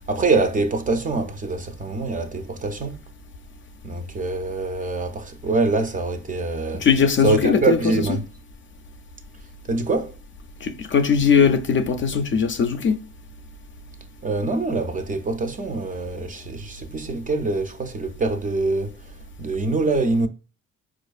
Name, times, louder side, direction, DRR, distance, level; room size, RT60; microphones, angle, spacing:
voice 1, 0.1-3.0 3.8-6.9 7.2-8.2 9.7-10.2 14.2-20.3, right 3 dB, 25° right, 0.4 m, -24 dB
voice 2, 6.8-7.8 10.6-13.0, left 6 dB, 40° left, 0.4 m, -19 dB
4.4 x 2.4 x 2.3 m
cardioid pair, 90°, 30 cm